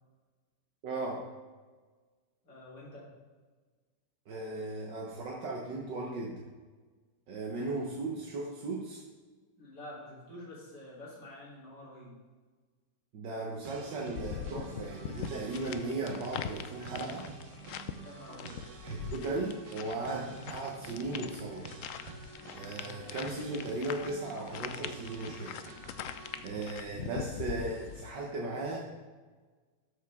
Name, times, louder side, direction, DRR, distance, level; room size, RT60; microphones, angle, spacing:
voice 1, 0.8-1.2 4.3-6.4 7.3-9.0 13.1-17.3 18.8-21.7 22.5-25.6 26.4-28.8, right 2 dB, 75° right, -2 dB, 1.9 m, -37 dB
voice 2, 2.4-3.1 9.6-12.1 18.0-18.7 22.6-22.9 26.5-27.1, left 1 dB, 65° left, -6 dB, 4.1 m, -48 dB
sound 1, 13.6-26.4, right 4 dB, 50° right, 1.0 m, -48 dB
sound 2, 14.2-28.1, left 9 dB, 85° left, 0.6 m, -43 dB
13.0 x 7.0 x 3.6 m, 1.4 s
omnidirectional pair, 2.0 m